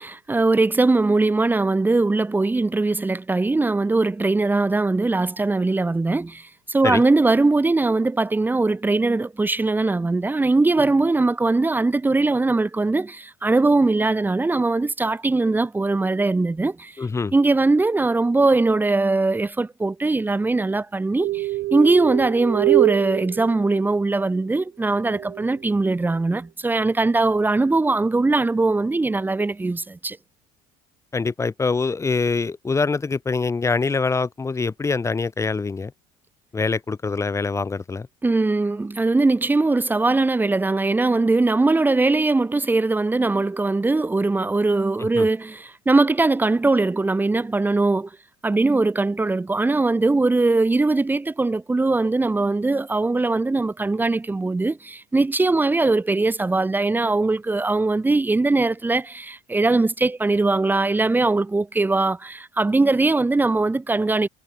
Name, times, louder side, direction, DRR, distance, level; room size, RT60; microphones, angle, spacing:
voice 1, 0.0-17.0 17.3-30.2 38.2-48.1 48.4-64.3, right 3 dB, 10° right, 2.2 m, -21 dB
voice 2, 17.0-17.3 31.1-35.9 36.5-38.1 45.0-45.3, left 4 dB, 20° left, 4.7 m, -24 dB
sound 1, 21.2-24.1 25.0-25.5, right 17 dB, 60° right, 2.2 m, -24 dB
cardioid pair, 125°, 16 cm